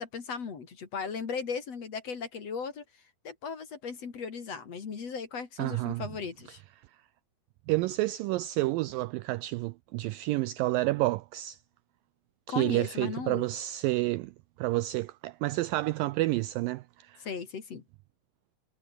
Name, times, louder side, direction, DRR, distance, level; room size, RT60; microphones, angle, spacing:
voice 1, 0.0-2.8 3.2-6.6 12.5-13.5 17.2-17.8, left 5 dB, 45° left, 3.5 m, -37 dB
voice 2, 5.6-6.0 7.7-11.6 12.5-14.3 14.6-17.2, right 18 dB, 80° right, 2.0 m, -29 dB
omnidirectional pair, 4.5 m